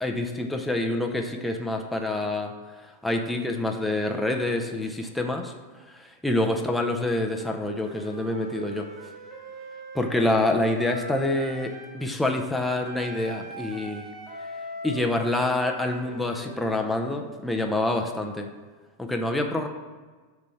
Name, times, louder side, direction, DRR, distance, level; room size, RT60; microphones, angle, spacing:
voice 1, 0.0-2.5 2.8-5.5 5.9-8.9 9.9-14.1 14.8-18.5 19.0-19.7, left 2 dB, 5° left, 2 dB, 0.5 m, -27 dB
Wind instrument woodwind instrument, 7.8-12.0 12.8-16.7, right 1 dB, 35° right, 1.0 m, -41 dB
5.0 x 3.5 x 5.5 m, 1.4 s
figure-of-eight pair, 90°, 0 cm